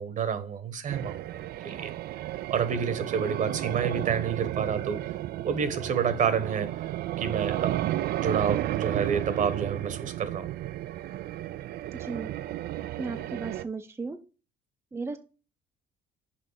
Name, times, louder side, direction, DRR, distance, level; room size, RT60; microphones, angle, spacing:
voice 1, 0.0-1.9 2.5-5.0 5.4-6.9 7.2-7.8 8.2-10.5, right 7 dB, 50° right, 1.2 m, -29 dB
sound 1, 0.9-13.6, right 14 dB, 65° right, 0.4 m, -33 dB
voice 2, 11.9-12.3 13.0-14.2 14.9-15.2, right 4 dB, 15° right, 0.6 m, -35 dB
6.1 x 5.1 x 6.3 m
cardioid pair, 110°, 17 cm